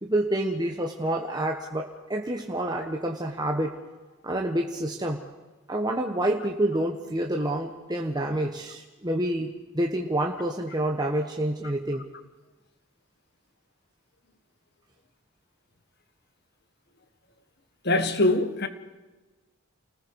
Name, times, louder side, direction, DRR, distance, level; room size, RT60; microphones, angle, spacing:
voice 1, 0.0-3.8 4.2-5.2 5.7-12.0, right 1 dB, 20° right, 1.4 m, -28 dB
voice 2, 17.9-18.7, left 2 dB, 50° left, 1.6 m, -23 dB
29.5 x 20.0 x 4.9 m
head